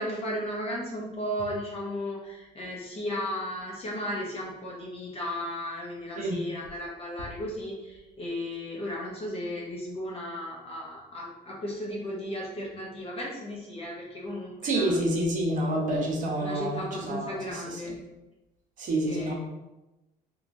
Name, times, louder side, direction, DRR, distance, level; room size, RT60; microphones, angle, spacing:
voice 1, 0.0-15.0 16.4-17.9 19.1-19.3, left 1 dB, 35° left, -4 dB, 0.6 m, -35 dB
voice 2, 14.6-18.0 18.8-19.3, right 1 dB, 50° right, -2 dB, 0.8 m, -28 dB
3.0 x 2.3 x 2.5 m, 1.0 s
cardioid pair, 110°, 17 cm